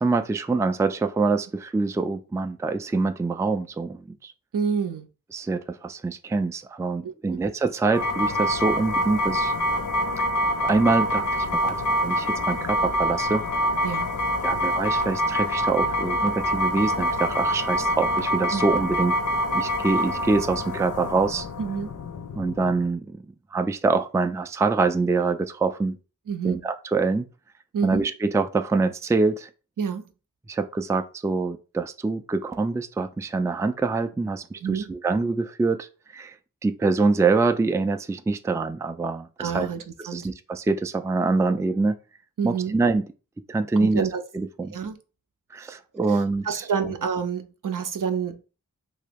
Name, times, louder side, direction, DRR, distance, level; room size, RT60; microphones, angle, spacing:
voice 1, 0.0-4.3 5.3-9.5 10.2-10.3 10.6-13.4 14.4-19.1 19.5-21.5 22.4-23.2 23.5-26.0 26.4-27.3 27.8-29.5 30.5-35.9 36.1-36.4 36.6-39.7 40.0-41.9 42.4-43.0 43.5-44.1 44.3-44.7 45.5-46.9, right 3 dB, 10° right, 0.3 m, -25 dB
voice 2, 4.5-5.1 7.0-7.4 13.8-14.1 18.5-18.6 21.6-21.9 26.3-26.6 27.7-28.1 29.8-30.0 34.6-34.9 39.4-40.3 42.4-42.7 43.8-44.2 44.7-45.0 46.1-46.2 46.4-48.4, right 6 dB, 70° right, 0.5 m, -28 dB
sound 1, 7.9-22.9, equal, 60° left, 0.6 m, -26 dB
2.9 x 2.8 x 3.5 m
wide cardioid pair, 45°, 33 cm